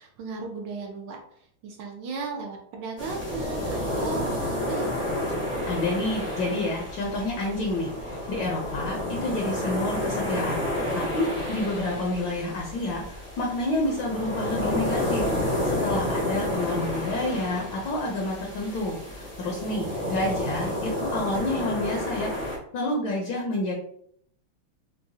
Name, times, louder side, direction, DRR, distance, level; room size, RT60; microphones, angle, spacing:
voice 1, 0.0-4.9 19.8-20.0, right 4 dB, 70° right, 2 dB, 1.1 m, -36 dB
sound 1, 3.0-22.6, left 1 dB, 20° left, 0.3 m, -30 dB
voice 2, 5.7-10.6 10.9-23.7, left 2 dB, 70° left, -1 dB, 1.3 m, -29 dB
4.6 x 2.1 x 2.7 m, 0.66 s
omnidirectional pair, 2.4 m